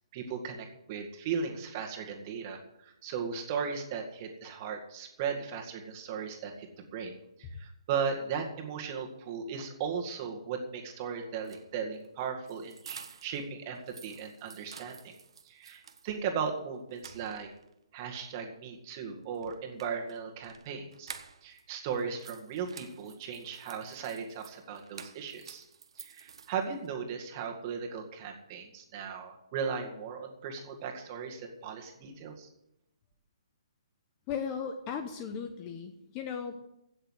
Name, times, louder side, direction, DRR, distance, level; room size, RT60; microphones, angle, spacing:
voice 1, 0.1-7.1 7.4-15.1 15.5-17.5 17.9-21.1 21.4-25.6 26.0-32.5, right 6 dB, 25° right, 2 dB, 2.0 m, -37 dB
sound 1, 11.3-13.4 13.8-16.1 16.5-16.6 16.9-17.7 19.3-21.6 21.9-26.9, right 6 dB, 60° right, 1.3 m, -50 dB
voice 2, 34.3-36.7, left 6 dB, 20° left, 7 dB, 0.8 m, -36 dB
16.0 x 6.6 x 8.1 m, 0.85 s
hypercardioid pair, 170°, 3 cm